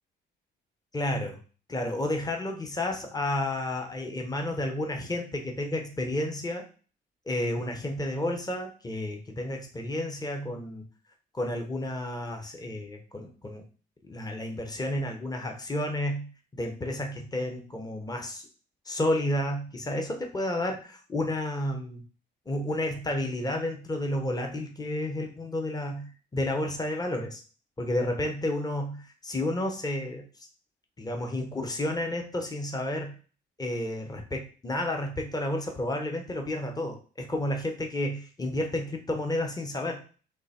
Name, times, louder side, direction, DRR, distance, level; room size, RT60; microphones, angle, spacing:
voice 1, 0.9-1.4 1.7-6.6 7.3-10.8 11.3-13.6 14.0-18.5 18.9-22.0 22.5-27.4 27.8-30.2 31.0-33.1 33.6-40.0, left 1 dB, 20° left, 3 dB, 1.0 m, -31 dB
3.8 x 3.0 x 4.3 m, 0.38 s
cardioid pair, 90°, 20 cm